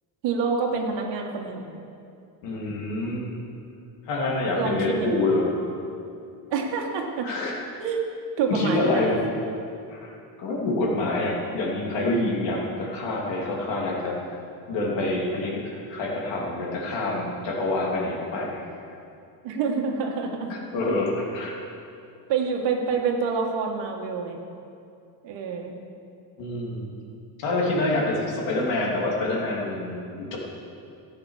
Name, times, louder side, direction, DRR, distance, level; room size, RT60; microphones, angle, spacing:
voice 1, 0.2-1.7 4.5-5.1 6.5-7.3 7.8-8.0 8.4-9.0 19.4-20.6 22.3-24.4 25.2-25.7, right 5 dB, 75° right, 2 dB, 2.0 m, -27 dB
voice 2, 2.4-3.2 4.1-5.8 7.2-7.5 8.5-9.2 9.9-14.1 14.7-18.7 20.5-21.5 26.4-26.9 27.4-30.4, left 2 dB, 75° left, -2 dB, 3.1 m, -27 dB
14.0 x 8.6 x 6.5 m, 2.6 s
cardioid pair, 120°, 44 cm